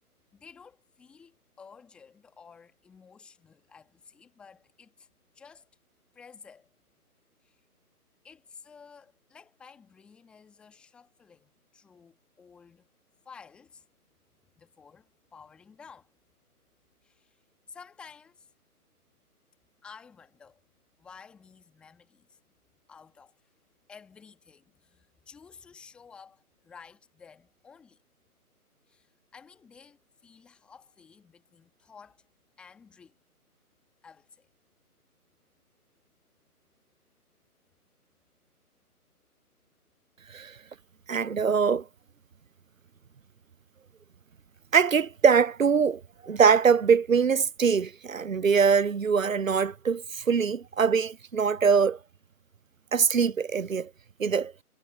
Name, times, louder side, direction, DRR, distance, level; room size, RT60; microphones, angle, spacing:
voice 1, 0.3-5.1 5.3-5.7 6.1-6.7 7.4-7.6 8.2-12.9 13.2-13.9 14.6-16.1 17.0-18.5 19.8-20.6 21.0-22.4 22.9-23.5 23.9-28.0 28.9-32.3 32.6-33.2 34.0-34.5, left 6 dB, ahead, 2.3 m, -53 dB
voice 2, 41.1-41.8 44.7-52.0 52.9-53.9 54.2-54.5, right 6 dB, 60° right, 0.6 m, -23 dB
figure-of-eight pair, 160°, 46 cm